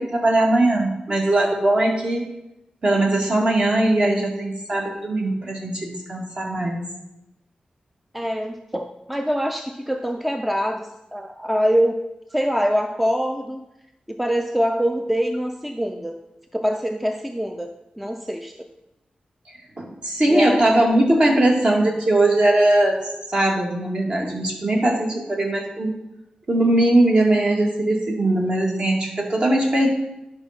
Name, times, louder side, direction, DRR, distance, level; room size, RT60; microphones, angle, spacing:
voice 1, 0.0-2.3 2.8-6.8 19.8-25.9 26.5-29.9, right 1 dB, 40° right, 0 dB, 2.0 m, -20 dB
voice 2, 8.1-12.0 12.3-13.6 14.1-16.2 16.5-18.5 20.3-20.8, equal, 5° right, 5 dB, 0.5 m, -24 dB
10.5 x 5.4 x 5.8 m, 0.90 s
wide cardioid pair, 140°, 3 cm